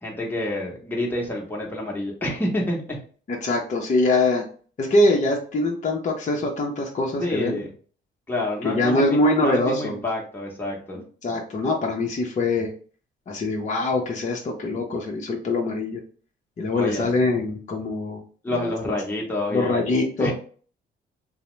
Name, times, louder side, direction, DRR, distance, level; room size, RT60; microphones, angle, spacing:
voice 1, 0.0-2.8 7.2-7.7 8.3-11.0 16.7-17.1 18.4-20.3, left 1 dB, 10° left, -2 dB, 0.9 m, -28 dB
voice 2, 3.3-4.4 4.8-7.6 8.6-10.0 11.2-12.7 13.3-16.0 16.6-18.2 18.5-18.6 19.5-20.3, left 2 dB, 40° left, 0 dB, 0.6 m, -23 dB
2.8 x 2.0 x 3.1 m, 0.42 s
cardioid pair, 90°, 20 cm